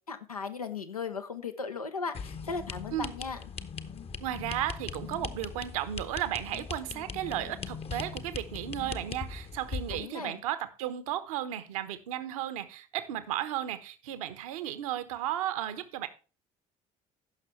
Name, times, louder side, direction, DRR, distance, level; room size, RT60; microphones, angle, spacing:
voice 1, 0.1-3.4 9.9-10.3, left 5 dB, 85° left, 0.9 m, -37 dB
sound 1, 2.1-10.0, left 5 dB, 35° left, 0.9 m, -40 dB
voice 2, 4.2-16.1, right 12 dB, 70° right, 1.1 m, -34 dB
16.0 x 6.2 x 3.2 m
figure-of-eight pair, 55°, 18 cm